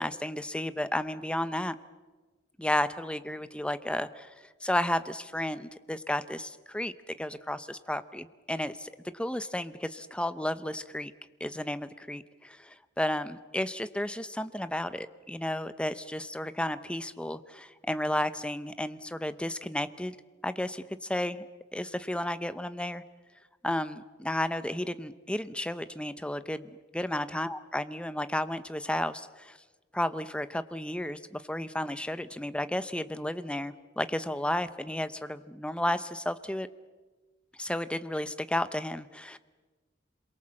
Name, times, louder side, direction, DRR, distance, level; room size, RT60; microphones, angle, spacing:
voice 1, 0.0-1.8 2.6-4.3 4.6-6.9 7.2-11.1 11.4-20.2 20.4-21.5 21.7-23.0 23.6-26.7 26.9-29.6 29.9-36.7 37.6-39.4, left 1 dB, 5° left, 12 dB, 0.7 m, -33 dB
27.5 x 22.5 x 7.6 m, 1.3 s
head